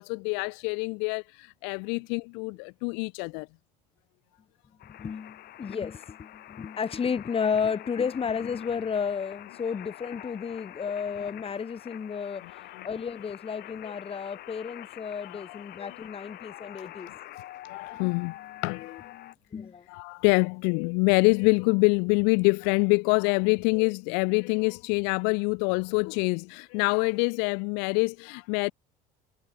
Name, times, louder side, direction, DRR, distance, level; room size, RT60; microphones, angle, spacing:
voice 1, 0.0-3.5 12.5-12.8 13.8-13.9 15.2-16.0 17.7-18.3 18.6-19.1 19.9-28.7, left 38 dB, 85° left, 1.3 m, -26 dB
sound 1, 4.8-19.3, left 14 dB, 60° left, 2.7 m, -46 dB
voice 2, 4.8-17.1 19.5-19.9, left 6 dB, 30° left, 4.3 m, -32 dB
supercardioid pair, 100°, 18 cm